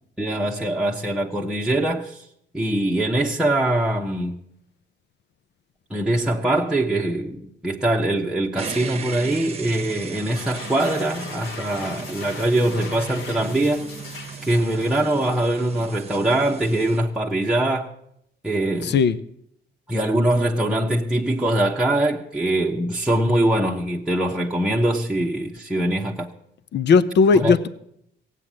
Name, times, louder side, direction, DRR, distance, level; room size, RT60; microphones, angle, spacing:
voice 1, 0.2-2.2 2.5-4.4 5.9-13.9 14.5-17.9 18.4-19.0 19.9-26.3 27.3-27.7, right 1 dB, 5° right, 1.1 m, -23 dB
sound 1, 8.6-17.0, right 5 dB, 30° right, 1.0 m, -37 dB
sound 2, 10.2-15.8, left 4 dB, 90° left, 2.3 m, -39 dB
voice 2, 18.8-19.2 26.7-27.7, left 5 dB, 60° left, 0.8 m, -17 dB
16.5 x 8.2 x 7.5 m
cardioid pair, 90°, 20 cm